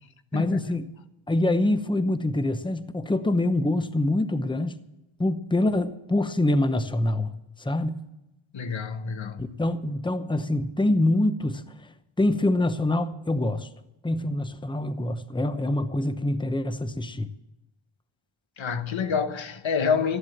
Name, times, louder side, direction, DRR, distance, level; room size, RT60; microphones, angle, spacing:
voice 1, 0.3-0.9 1.3-4.8 5.2-7.3 7.6-8.0 9.4-11.6 12.2-13.7 14.0-17.3, left 1 dB, 10° left, 0.8 m, -25 dB
voice 2, 8.5-9.6 18.6-20.2, left 6 dB, 70° left, 1.2 m, -27 dB
14.5 x 11.5 x 7.2 m
wide cardioid pair, 130°, 48 cm